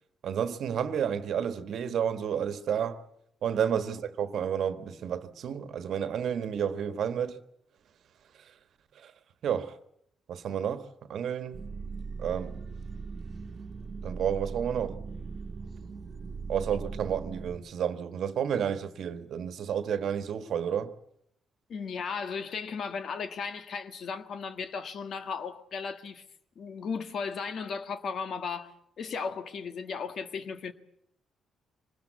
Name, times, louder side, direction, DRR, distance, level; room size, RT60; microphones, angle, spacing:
voice 1, 0.2-3.0 3.4-7.4 8.4-8.5 8.9-9.1 9.4-9.8 10.3-11.6 12.2-12.6 14.0-15.1 16.5-20.9, right 8 dB, 65° right, 1.3 m, -31 dB
sound 1, 11.5-17.6, right 4 dB, 50° right, 1.3 m, -39 dB
voice 2, 21.7-26.2 26.5-28.7 29.0-30.7, left 5 dB, 60° left, 1.6 m, -35 dB
24.5 x 20.0 x 8.3 m
hypercardioid pair, 45°, 0 cm